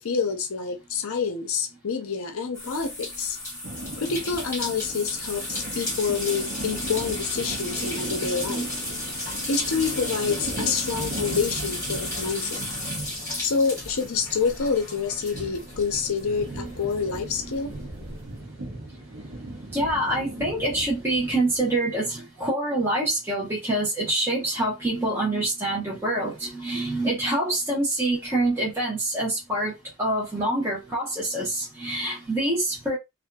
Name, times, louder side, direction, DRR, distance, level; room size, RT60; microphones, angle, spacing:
voice 1, 0.0-3.4 4.0-8.7 9.5-12.6 13.4-17.7, left 5 dB, 75° left, 0.6 m, -27 dB
sound 1, 2.5-16.6 16.9-18.1, left 1 dB, 15° left, 1.4 m, -34 dB
sound 2, 3.6-21.8, right 1 dB, 60° right, 0.8 m, -38 dB
voice 2, 7.4-8.7 16.5-16.7 19.7-29.7 30.0-33.0, right 1 dB, 10° right, 0.9 m, -26 dB
2.6 x 2.5 x 2.2 m
head